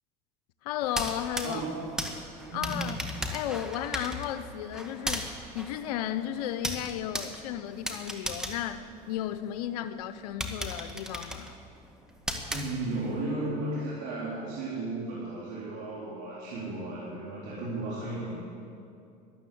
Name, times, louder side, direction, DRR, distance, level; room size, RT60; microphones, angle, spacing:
voice 1, 0.6-1.6 2.5-3.0 3.3-11.5, left 11 dB, 85° left, 11 dB, 0.6 m, -34 dB
sound 1, 0.8-9.6 10.0-10.1 10.4-13.2, equal, 5° right, 1.7 m, -37 dB
voice 2, 1.4-1.8 2.5-3.0 12.5-18.3, right 2 dB, 70° right, -7 dB, 3.8 m, -34 dB
13.5 x 11.5 x 8.4 m, 2.6 s
supercardioid pair, 95°, 19 cm